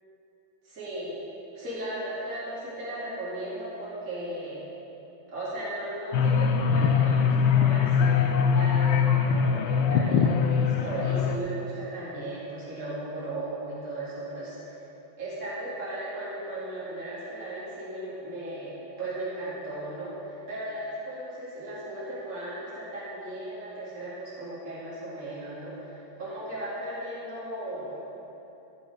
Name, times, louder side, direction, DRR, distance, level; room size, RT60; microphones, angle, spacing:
voice 1, 0.6-1.2 1.5-4.7 5.3-14.8 15.2-28.0, right 1 dB, 40° right, -9 dB, 2.7 m, -36 dB
sound 1, 6.1-11.4, left 6 dB, 75° left, 1.4 m, -22 dB
14.0 x 7.1 x 4.9 m, 2.9 s
omnidirectional pair, 2.4 m